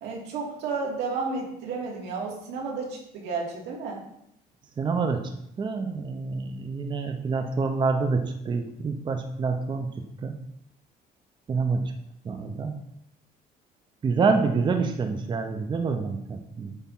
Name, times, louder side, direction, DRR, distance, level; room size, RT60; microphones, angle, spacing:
voice 1, 0.0-4.0, right 4 dB, 85° right, -1 dB, 2.3 m, -32 dB
voice 2, 4.8-5.3 5.6-9.9 10.2-10.3 11.5-11.8 12.3-12.7 14.0-16.7, right 4 dB, 25° right, 5 dB, 0.6 m, -27 dB
8.6 x 3.5 x 5.5 m, 0.77 s
cardioid pair, 130°, 17 cm